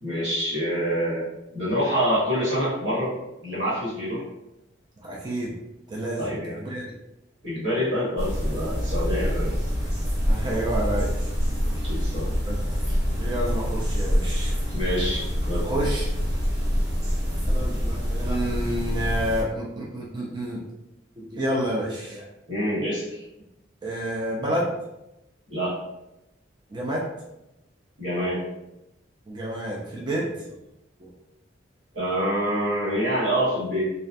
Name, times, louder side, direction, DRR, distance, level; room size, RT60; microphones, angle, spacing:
voice 1, 0.0-1.3 1.5-3.1 3.4-4.2 6.2-6.7 7.4-9.5 11.8-12.3 12.9-13.0 14.7-15.7 22.5-23.3 25.5-25.7 28.0-28.4 31.9-33.9, equal, 85° right, -8 dB, 1.3 m, -26 dB
voice 2, 5.0-5.6 5.9-6.8 10.3-11.2 12.5-12.6 13.2-14.6 15.6-16.1 17.5-20.6 21.2-22.3 23.8-24.7 26.7-27.1 29.3-30.5 31.0-31.1, right 1 dB, 25° right, -4 dB, 0.3 m, -29 dB
sound 1, 8.2-19.4, equal, 50° right, 1.5 m, -26 dB
2.3 x 2.2 x 2.5 m, 0.91 s
head